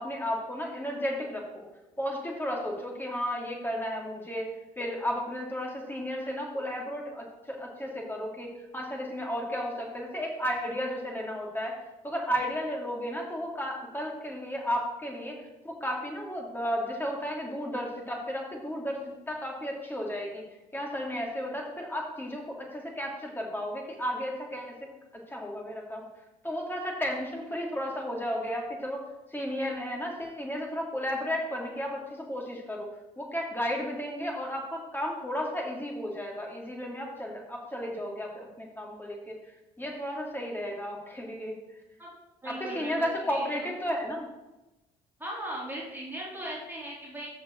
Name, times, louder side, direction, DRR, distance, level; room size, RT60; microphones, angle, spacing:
voice 1, 0.0-1.6 2.0-15.4 15.6-20.4 20.7-24.8 25.3-26.0 26.4-29.0 29.3-32.9 33.2-39.4 39.8-41.6 42.4-44.3, equal, 10° left, 0 dB, 2.9 m, -33 dB
voice 2, 42.4-43.7 45.2-47.3, right 1 dB, 10° right, -5 dB, 3.5 m, -38 dB
14.0 x 4.6 x 4.6 m, 0.99 s
figure-of-eight pair, 50°, 21 cm